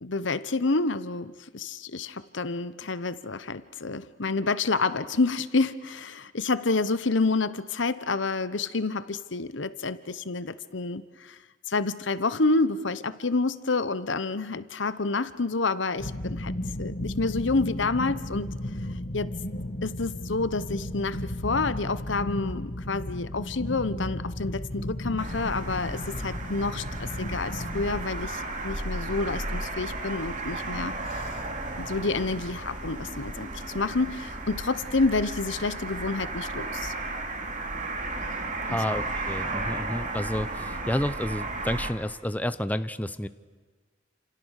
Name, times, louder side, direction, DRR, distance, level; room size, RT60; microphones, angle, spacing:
voice 1, 0.0-11.4 11.7-16.5 16.8-18.5 19.1-19.3 19.8-31.2 31.8-33.5 33.7-36.9 38.7-38.8, left 3 dB, 75° left, 1.1 m, -28 dB
sound 1, 16.0-28.1, left 1 dB, 55° left, 2.3 m, -34 dB
sound 2, 25.2-41.9, right 2 dB, 40° right, 3.0 m, -34 dB
voice 2, 38.7-43.3, left 1 dB, 10° left, 0.7 m, -30 dB
29.5 x 28.0 x 6.6 m
head